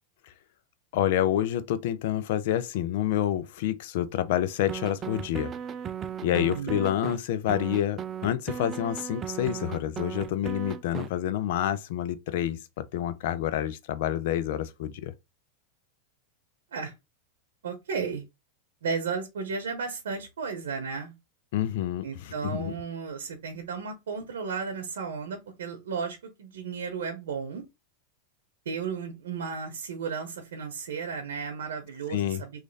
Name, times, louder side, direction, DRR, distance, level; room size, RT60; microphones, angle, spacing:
voice 1, 0.9-5.5 6.2-15.1 21.5-22.7 32.1-32.4, left 11 dB, 65° left, 0.5 m, -28 dB
sound 1, 4.7-7.2 7.5-11.1, right 8 dB, 30° right, 0.3 m, -36 dB
voice 2, 6.3-6.9 16.7-16.9 17.6-18.3 18.8-21.1 22.0-27.6 28.7-32.6, right 5 dB, 90° right, 0.8 m, -34 dB
3.1 x 2.5 x 3.9 m
supercardioid pair, 125°, 0 cm